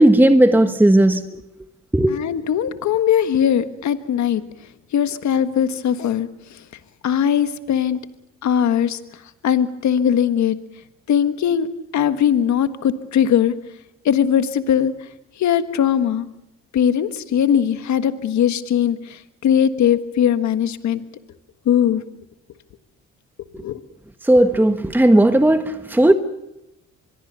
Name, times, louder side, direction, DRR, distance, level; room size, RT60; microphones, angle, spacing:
voice 1, 0.0-1.4 1.9-2.2 23.5-23.6 24.2-26.1, right 1 dB, 5° right, 1.3 m, -15 dB
voice 2, 2.1-4.4 4.9-6.6 7.0-8.0 8.4-9.0 9.4-10.6 11.1-11.7 11.9-13.5 14.0-14.9 15.4-16.3 16.7-21.0 21.6-22.0 23.6-23.8, left 9 dB, 70° left, 1.5 m, -19 dB
25.0 x 22.0 x 6.9 m
cardioid pair, 90°, 30 cm